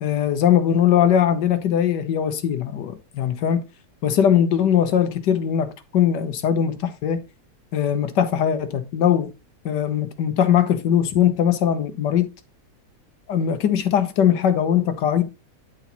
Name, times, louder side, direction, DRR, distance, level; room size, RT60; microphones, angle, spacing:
voice 1, 0.0-3.6 4.0-7.2 7.7-9.3 9.7-12.3 13.3-15.2, left 9 dB, 85° left, 1.7 m, -20 dB
10.5 x 4.4 x 4.1 m
omnidirectional pair, 1.8 m